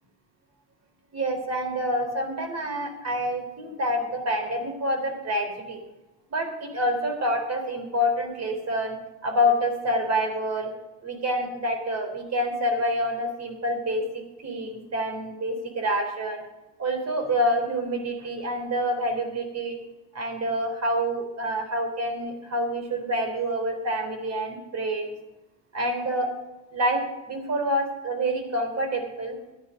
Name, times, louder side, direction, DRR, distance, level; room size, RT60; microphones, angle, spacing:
voice 1, 1.1-5.8 6.3-9.0 9.2-10.7 11.0-14.1 14.4-16.4 16.8-19.8 20.1-25.1 25.7-26.3 26.7-29.4, equal, 45° right, 6 dB, 3.5 m, -27 dB
12.5 x 10.0 x 5.3 m, 1.1 s
supercardioid pair, 75°, 38 cm